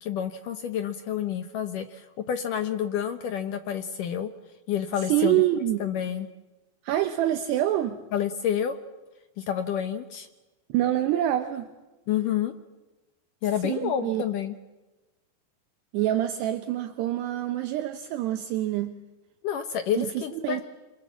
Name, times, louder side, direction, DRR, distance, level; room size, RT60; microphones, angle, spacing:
voice 1, 0.0-4.3 4.7-5.4 5.8-6.3 8.1-8.8 9.4-10.3 12.1-12.5 13.4-14.6 19.4-20.6, left 9 dB, 75° left, 8 dB, 2.0 m, -29 dB
voice 2, 5.1-5.8 6.8-8.0 10.7-11.7 13.6-14.2 15.9-18.9 20.0-20.6, right 13 dB, 75° right, 8 dB, 2.9 m, -26 dB
27.0 x 27.0 x 7.3 m, 1.1 s
omnidirectional pair, 5.2 m